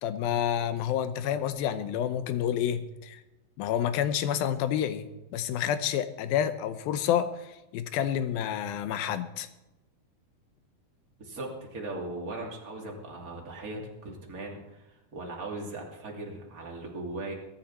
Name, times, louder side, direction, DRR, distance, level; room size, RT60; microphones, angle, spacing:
voice 1, 0.0-3.2 3.6-9.5, left 10 dB, 85° left, 11 dB, 2.7 m, -29 dB
voice 2, 11.2-17.3, right 2 dB, 25° right, -1 dB, 2.9 m, -38 dB
22.0 x 10.5 x 4.2 m, 1.0 s
omnidirectional pair, 4.2 m